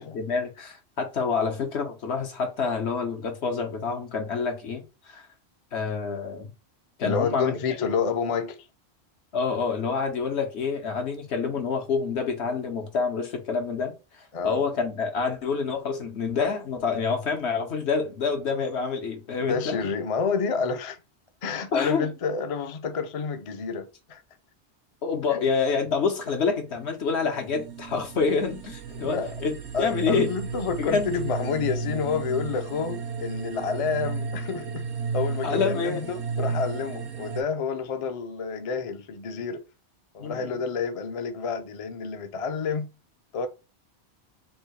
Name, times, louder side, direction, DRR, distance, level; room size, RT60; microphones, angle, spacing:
voice 1, 0.0-5.3 5.7-6.5 7.0-7.6 9.3-19.8 21.7-22.1 25.0-30.3 30.8-31.1 35.4-36.0 40.2-40.6, left 5 dB, 75° left, 1.2 m, -27 dB
voice 2, 7.0-8.7 14.3-14.6 19.4-21.0 21.4-24.2 25.3-25.4 28.9-29.4 29.7-34.8 35.1-39.6 40.1-42.9 43.3-43.5, left 5 dB, 45° left, 0.5 m, -29 dB
sound 1, 26.8-37.4, right 4 dB, 85° right, 1.0 m, -33 dB
3.3 x 2.7 x 4.5 m
omnidirectional pair, 1.1 m